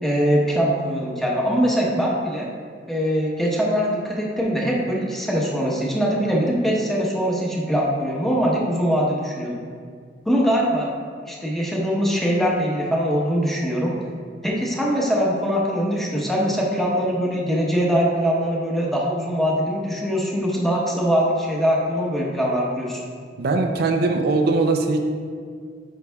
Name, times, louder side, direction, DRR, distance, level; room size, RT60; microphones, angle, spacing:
voice 1, 0.0-2.5 2.9-9.6 10.3-10.9 11.3-13.9 14.4-23.0, equal, ahead, -4 dB, 1.0 m, -22 dB
voice 2, 23.4-25.0, right 3 dB, 60° right, 4 dB, 0.5 m, -20 dB
9.7 x 5.5 x 2.3 m, 2.1 s
head